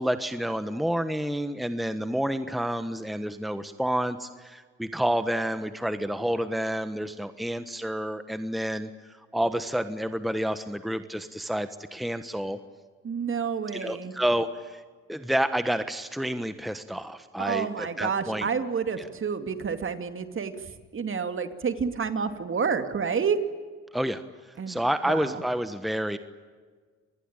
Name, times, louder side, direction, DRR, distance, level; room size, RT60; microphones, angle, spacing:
voice 1, 0.0-12.6 13.7-14.8 15.1-18.5 23.9-24.2 24.5-26.2, equal, ahead, 10 dB, 1.3 m, -29 dB
voice 2, 13.0-14.1 17.4-23.4 24.6-25.4, right 6 dB, 45° right, 9 dB, 2.5 m, -29 dB
27.0 x 20.5 x 9.0 m, 1.5 s
cardioid pair, 90°, 30 cm